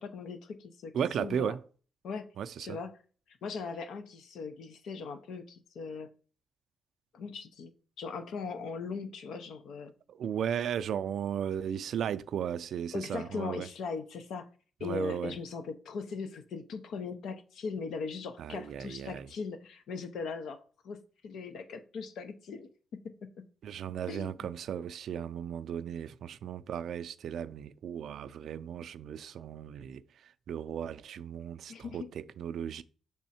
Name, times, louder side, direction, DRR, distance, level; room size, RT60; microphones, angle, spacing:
voice 1, 0.0-0.9 1.2-1.5 2.0-2.3 2.6-2.9 3.3-6.1 7.1-7.7 8.0-9.9 12.9-14.5 14.8-22.7 23.0-23.3 24.1-24.5 31.7-32.1, left 5 dB, 90° left, 0.8 m, -39 dB
voice 2, 0.9-1.6 2.4-2.8 10.1-13.7 14.8-15.3 18.4-19.3 23.6-32.8, right 8 dB, 70° right, 0.4 m, -36 dB
6.3 x 3.5 x 4.2 m
wide cardioid pair, 150°, 0 cm